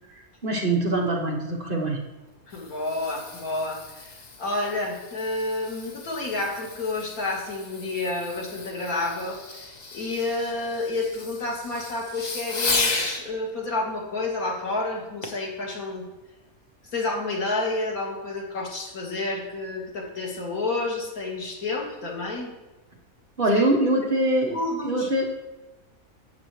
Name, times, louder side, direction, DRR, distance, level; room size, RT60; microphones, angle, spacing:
voice 1, 0.2-2.0 23.4-24.6 24.8-25.2, right 1 dB, 40° right, -1 dB, 1.3 m, -23 dB
Fireworks, 2.2-13.2 15.2-15.5 16.1-16.2, left 3 dB, 35° left, 0.9 m, -34 dB
voice 2, 2.5-16.0 16.9-22.5 23.6-23.7 24.5-25.1, left 2 dB, 90° left, -1 dB, 2.2 m, -30 dB
12.0 x 7.9 x 3.2 m, 1.1 s
omnidirectional pair, 1.5 m